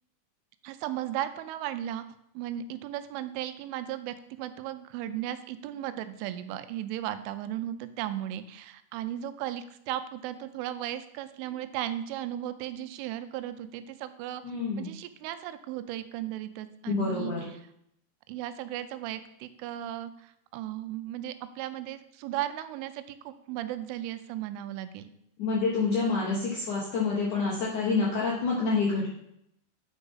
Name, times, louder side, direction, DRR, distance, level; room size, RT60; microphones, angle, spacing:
voice 1, 0.6-2.0 2.4-14.4 14.8-17.3 18.3-25.1, right 12 dB, 90° right, 11 dB, 3.1 m, -36 dB
voice 2, 14.4-14.9 16.9-17.5 25.4-29.1, left 4 dB, 70° left, -4 dB, 1.9 m, -27 dB
9.1 x 4.9 x 5.5 m, 0.75 s
omnidirectional pair, 5.6 m